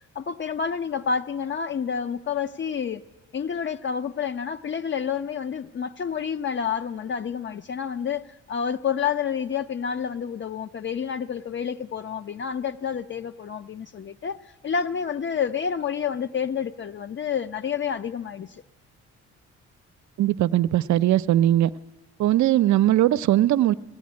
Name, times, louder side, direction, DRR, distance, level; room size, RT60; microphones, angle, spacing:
voice 1, 0.1-3.0 3.3-18.6, left 7 dB, 40° left, 0.6 m, -29 dB
voice 2, 20.2-21.7 22.2-23.7, right 13 dB, 70° right, 0.6 m, -20 dB
18.5 x 14.5 x 9.6 m
cardioid pair, 90°, 30 cm